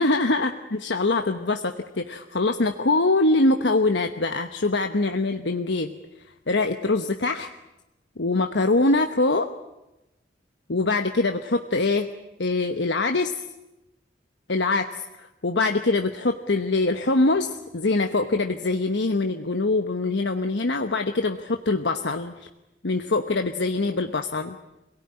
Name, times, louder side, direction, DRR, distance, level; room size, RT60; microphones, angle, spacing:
voice 1, 0.0-5.9 6.5-7.5 8.2-9.5 10.7-12.1 12.4-13.3 14.5-22.5 22.8-24.6, left 2 dB, 80° left, 6 dB, 1.1 m, -23 dB
27.0 x 17.5 x 9.8 m, 0.98 s
head